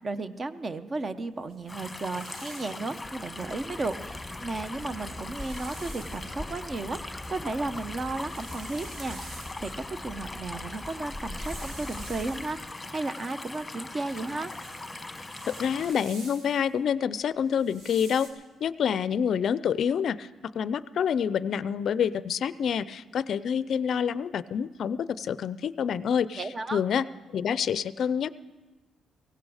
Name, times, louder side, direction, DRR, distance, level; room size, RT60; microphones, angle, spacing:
voice 1, 0.0-9.3 9.6-14.5 26.4-26.8, right 3 dB, 35° right, 12 dB, 0.7 m, -34 dB
sound 1, 1.5-3.0 4.4-4.5 4.9-6.3 6.9-9.9 10.8-12.7 13.3-16.7 17.5-18.3, right 2 dB, 80° right, 2.7 m, -49 dB
sound 2, 1.7-15.9, left 2 dB, 15° left, 1.1 m, -41 dB
Bird, 3.0-12.7, left 1 dB, 10° right, 1.6 m, -43 dB
voice 2, 15.5-18.3 18.6-20.3 20.5-27.1 27.3-28.3, left 7 dB, 60° left, 17 dB, 0.4 m, -27 dB
17.0 x 16.0 x 4.9 m, 1.2 s
cardioid pair, 90°, 0 cm